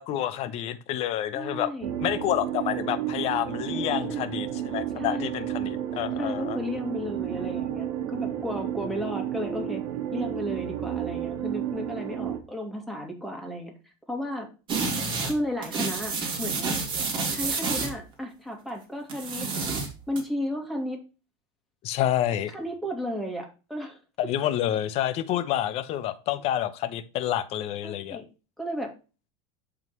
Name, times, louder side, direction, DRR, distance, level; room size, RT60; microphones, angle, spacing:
voice 1, 0.0-1.7 2.0-6.6 14.9-15.3 21.8-22.5 24.2-28.2, left 12 dB, 45° left, 12 dB, 0.9 m, -29 dB
voice 2, 1.3-2.0 3.7-4.2 5.0-5.3 6.2-9.8 10.1-13.7 14.1-14.5 15.2-16.8 17.2-19.5 20.1-21.0 22.5-24.0 27.8-28.2 28.6-28.9, equal, ahead, 1 dB, 2.3 m, -33 dB
sound 1, 1.8-12.4, right 10 dB, 80° right, 1.3 m, -32 dB
sound 2, 14.7-15.4 15.6-18.0 19.1-20.2, right 4 dB, 35° right, 2.5 m, -29 dB
10.5 x 3.8 x 3.1 m, 0.31 s
supercardioid pair, 130°, 14 cm